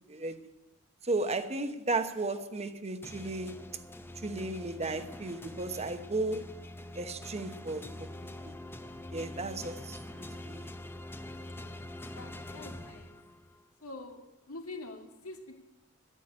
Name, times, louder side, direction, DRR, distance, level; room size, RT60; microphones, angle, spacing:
voice 1, 0.1-0.4 1.0-3.6 4.2-6.5 6.9-8.1 8.4-8.5 9.1-10.0 10.4-10.7, right 2 dB, 30° right, 1.0 m, -34 dB
sound 1, 3.0-13.6, left 1 dB, 10° left, 0.7 m, -45 dB
voice 2, 11.5-13.2 13.8-15.6, left 2 dB, 80° left, 2.3 m, -46 dB
11.5 x 10.0 x 8.7 m
head